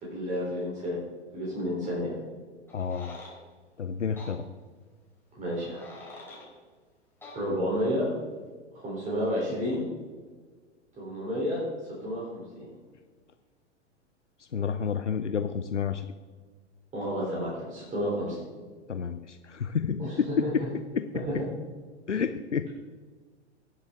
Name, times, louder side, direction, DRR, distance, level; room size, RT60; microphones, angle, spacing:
voice 1, 0.0-1.0 1.3-2.1 5.4-5.9 7.3-8.1 8.7-9.8 11.0-12.7 16.9-18.4 20.0-20.5 21.3-21.4, equal, 20° right, -5 dB, 3.5 m, -31 dB
voice 2, 2.7-3.2 3.8-4.5 14.4-16.1 18.9-21.1 22.1-22.7, left 6 dB, 85° left, 9 dB, 0.6 m, -30 dB
sound 1, 2.7-3.3 4.2-4.3 5.5-6.5 7.2-7.4, left 2 dB, 5° left, 3.6 m, -46 dB
18.5 x 7.3 x 3.6 m, 1.5 s
figure-of-eight pair, 95°, 35 cm